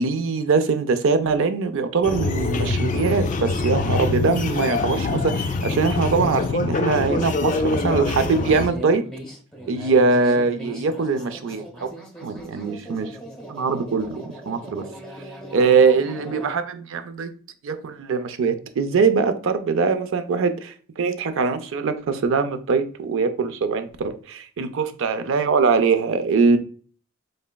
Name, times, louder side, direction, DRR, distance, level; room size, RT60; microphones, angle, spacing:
voice 1, 0.0-9.0 9.7-11.9 12.2-13.2 13.5-14.9 15.5-17.3 17.6-26.6, right 4 dB, 70° right, 0.5 m, -22 dB
sound 1, 2.0-8.7, left 3 dB, 40° left, 0.4 m, -24 dB
sound 2, 7.0-16.5, right 1 dB, 5° left, 0.8 m, -39 dB
4.1 x 3.2 x 2.2 m
head